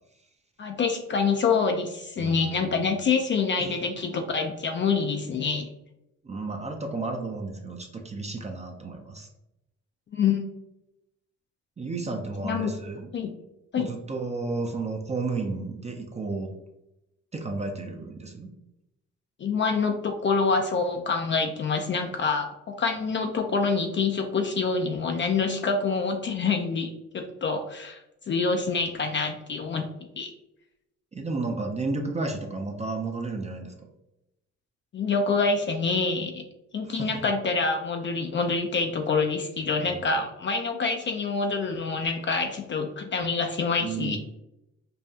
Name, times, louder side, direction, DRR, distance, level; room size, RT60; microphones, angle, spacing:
voice 1, 0.6-5.7 10.1-10.4 12.4-12.7 13.1-13.3 13.7-13.9 19.4-28.0 28.3-29.9 30.2-30.3 34.9-36.4 36.7-44.2, left 4 dB, 40° left, 4 dB, 0.4 m, -26 dB
voice 2, 2.2-3.0 3.6-3.8 6.2-9.3 11.8-13.1 13.8-16.5 17.3-18.5 31.1-33.9 36.9-37.1 39.8-40.0 43.8-44.2, right 3 dB, 20° right, 3 dB, 0.5 m, -32 dB
5.4 x 2.3 x 2.7 m, 0.89 s
cardioid pair, 90°, 30 cm